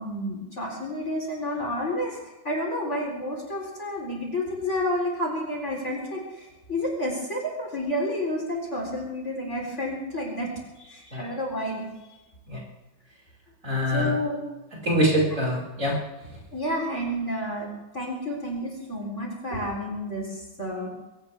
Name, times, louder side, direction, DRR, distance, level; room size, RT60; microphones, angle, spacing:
voice 1, 0.0-12.2 13.9-14.4 16.5-20.9, left 1 dB, 35° left, -1 dB, 4.1 m, -30 dB
voice 2, 13.6-14.2 14.8-15.9, equal, 35° right, -4 dB, 5.6 m, -24 dB
23.0 x 17.0 x 3.5 m, 1.1 s
omnidirectional pair, 2.2 m